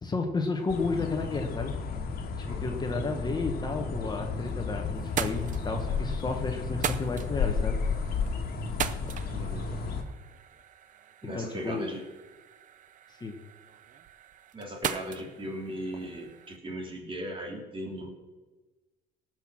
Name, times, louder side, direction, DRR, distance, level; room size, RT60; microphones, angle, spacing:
voice 1, 0.0-1.7 2.4-7.8 11.3-11.9 13.1-13.4, left 3 dB, 25° left, 3 dB, 1.2 m, -32 dB
sound 1, 0.7-10.0, left 5 dB, 60° left, 1.6 m, -32 dB
voice 2, 2.5-2.8 9.3-9.8 11.2-12.0 14.5-18.1, equal, 30° right, 1 dB, 3.1 m, -38 dB
sound 2, 4.1-4.6 4.9-16.6, right 9 dB, 50° right, 0.7 m, -40 dB
18.0 x 6.0 x 6.3 m, 1.2 s
cardioid pair, 110°, 17 cm